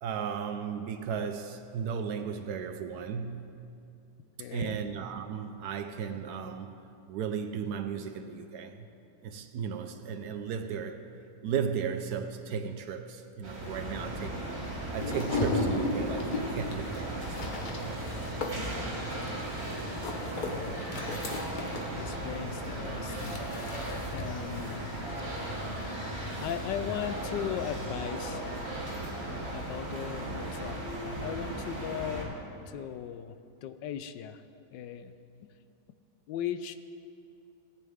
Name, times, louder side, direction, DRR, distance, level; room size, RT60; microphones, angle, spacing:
voice 1, 0.0-3.7 4.5-8.9 9.2-11.1 11.4-14.4 14.9-17.4 18.2-19.0 32.8-32.9, right 7 dB, 70° right, 8 dB, 1.1 m, -35 dB
voice 2, 4.4-4.8 20.5-21.2 21.9-23.4 24.1-24.9 26.4-28.5 29.5-32.3 32.7-34.4 34.7-35.1 35.4-35.5 36.3-36.8, left 9 dB, 85° left, 11 dB, 1.2 m, -38 dB
sound 1, 13.4-32.3, right 1 dB, 35° right, 2.4 m, -37 dB
sound 2, 15.0-27.8, left 2 dB, 35° left, 0.8 m, -37 dB
17.0 x 8.7 x 3.5 m, 2.6 s
omnidirectional pair, 1.9 m